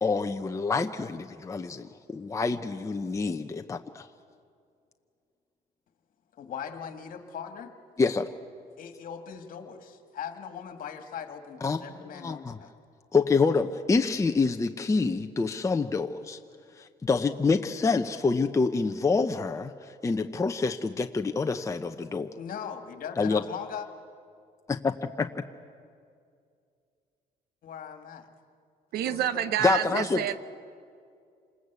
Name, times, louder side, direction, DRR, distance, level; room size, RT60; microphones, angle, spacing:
voice 1, 0.0-4.1 8.0-8.3 11.6-11.8 12.1-12.6 13.1-16.4 16.8-22.3 23.2-23.4 24.7-25.3 29.6-30.2, left 4 dB, 20° left, 5 dB, 0.8 m, -27 dB
voice 2, 6.4-7.7 8.8-12.7 22.3-23.9 27.6-28.3 29.0-30.3, left 7 dB, 55° left, 6 dB, 2.2 m, -40 dB
voice 3, 28.9-30.4, right 11 dB, 70° right, 15 dB, 0.9 m, -28 dB
27.5 x 20.0 x 8.3 m, 2.3 s
cardioid pair, 110°, 17 cm